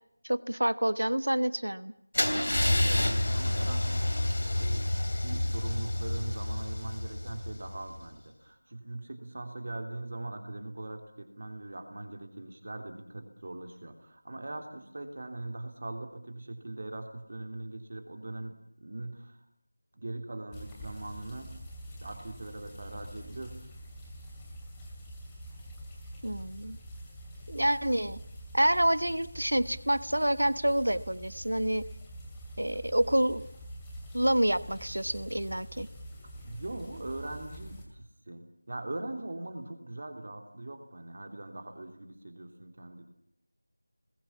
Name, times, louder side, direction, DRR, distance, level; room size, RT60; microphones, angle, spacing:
voice 1, 0.2-1.9 26.2-26.8 27.5-28.2 28.5-31.9 32.6-33.4 34.1-35.9, right 1 dB, 75° right, 16 dB, 1.1 m, -27 dB
Car / Engine starting / Idling, 2.1-8.0, left 1 dB, 55° left, 3.2 m, -29 dB
voice 2, 2.2-4.1 4.6-4.9 5.2-19.4 19.9-21.5 21.9-23.6 36.2-43.0, right 2 dB, 40° right, 5 dB, 3.3 m, -41 dB
sound 1, 20.5-37.8, right 1 dB, 10° left, 2.8 m, -46 dB
27.5 x 21.0 x 8.5 m, 0.74 s
figure-of-eight pair, 170°, 0 cm